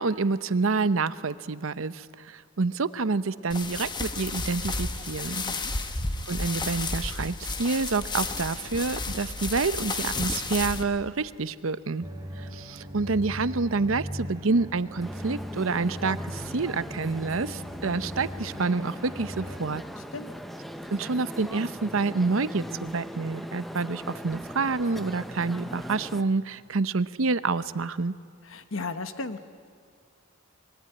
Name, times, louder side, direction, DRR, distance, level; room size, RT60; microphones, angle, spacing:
voice 1, 0.0-5.4 6.3-12.1 12.5-19.8 20.9-28.1, right 4 dB, 75° right, 15 dB, 0.8 m, -28 dB
sound 1, 3.5-10.8, left 3 dB, 20° left, 1.2 m, -32 dB
voice 2, 5.4-5.7 20.0-20.3 28.4-29.4, left 3 dB, 70° left, 10 dB, 1.2 m, -35 dB
sound 2, 12.0-19.6, equal, 20° right, 3.3 m, -39 dB
sound 3, 15.0-26.2, equal, ahead, 0.9 m, -40 dB
25.0 x 22.0 x 9.9 m, 2.2 s
head